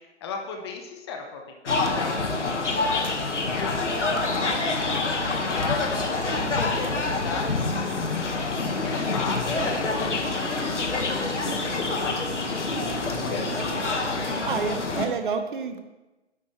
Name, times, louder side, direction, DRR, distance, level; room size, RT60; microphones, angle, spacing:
voice 1, 0.0-3.1 3.5-8.3 8.8-12.3 12.9-14.7, left 4 dB, 20° left, 3 dB, 0.8 m, -38 dB
sound 1, 1.7-15.1, left 3 dB, 80° left, 1.5 m, -26 dB
voice 2, 13.1-13.6 14.5-15.8, right 5 dB, 45° right, 8 dB, 0.9 m, -30 dB
9.9 x 8.2 x 3.1 m, 1.1 s
figure-of-eight pair, 140°, 35 cm